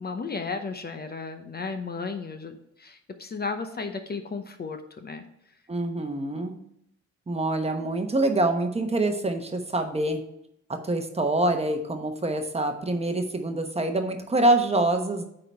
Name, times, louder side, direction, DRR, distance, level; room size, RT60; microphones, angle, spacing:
voice 1, 0.0-5.2, left 4 dB, 30° left, 7 dB, 0.8 m, -34 dB
voice 2, 5.7-6.6 7.3-10.2 10.7-15.2, right 2 dB, 20° right, 5 dB, 1.0 m, -25 dB
9.0 x 3.9 x 4.4 m, 0.76 s
cardioid pair, 90°, 30 cm